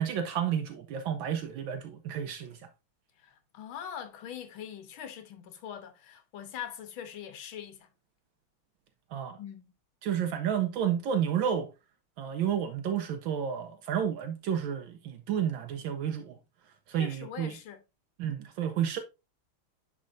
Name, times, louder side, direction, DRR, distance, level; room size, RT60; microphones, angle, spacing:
voice 1, 0.0-2.6 9.1-9.4 10.0-11.7 12.2-16.4 16.9-17.5 18.2-19.0, right 9 dB, 75° right, 1.4 m, -31 dB
voice 2, 3.2-7.9 9.4-9.7 17.0-17.8, left 9 dB, 75° left, 1.8 m, -42 dB
10.0 x 4.3 x 2.6 m
omnidirectional pair, 2.3 m